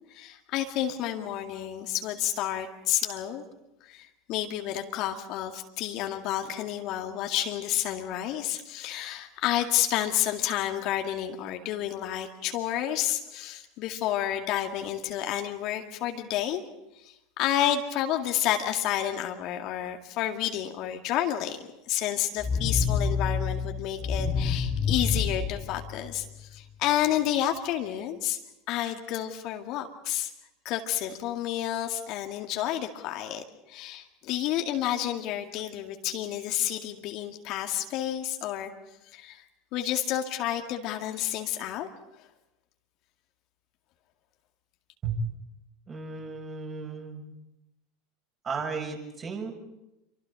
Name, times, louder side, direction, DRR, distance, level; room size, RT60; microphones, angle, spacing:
voice 1, 0.1-3.4 3.8-16.6 17.0-21.6 21.9-28.4 28.7-30.3 30.6-38.7 39.1-39.4 39.7-41.9 42.2-42.3, left 12 dB, 50° left, 4 dB, 2.1 m, -30 dB
sound 1, 22.4-26.4, left 5 dB, 25° left, 2.2 m, -28 dB
voice 2, 45.9-47.2 48.4-49.5, right 5 dB, 30° right, 1 dB, 6.8 m, -34 dB
28.0 x 24.5 x 5.2 m, 0.93 s
figure-of-eight pair, 80°, 0 cm